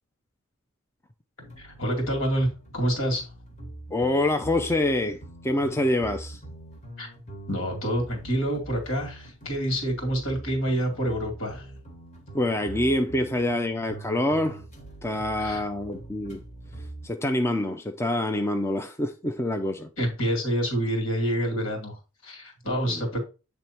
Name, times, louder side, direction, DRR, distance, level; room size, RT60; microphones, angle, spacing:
sound 1, 1.4-17.1, right 2 dB, 35° left, 1.4 m, -43 dB
voice 1, 1.6-2.5 2.7-3.2 7.0-7.1 7.5-11.7 15.4-15.6 20.0-23.2, equal, 70° left, 2.5 m, -27 dB
voice 2, 3.9-5.2 5.4-6.4 12.3-14.6 15.0-16.4 17.0-19.9 22.9-23.0, left 1 dB, 10° left, 0.5 m, -26 dB
8.2 x 3.5 x 4.4 m
head